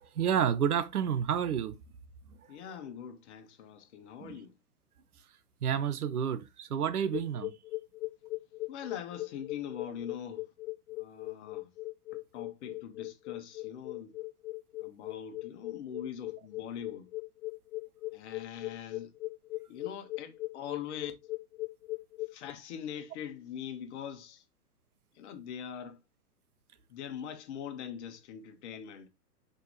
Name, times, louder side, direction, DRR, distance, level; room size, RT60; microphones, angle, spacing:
voice 1, 0.0-1.8 4.2-4.4 5.6-7.6, right 8 dB, 65° right, 1.0 m, -30 dB
voice 2, 2.5-4.6 8.7-10.5 10.9-11.7 12.1-14.2 14.8-17.1 18.1-19.1 19.7-21.1 22.3-24.4 25.1-26.0 26.9-29.1, left 8 dB, 45° left, 1.7 m, -42 dB
sound 1, 7.1-22.5, left 19 dB, 65° left, 0.5 m, -39 dB
6.6 x 5.3 x 3.2 m
figure-of-eight pair, 115°, 48 cm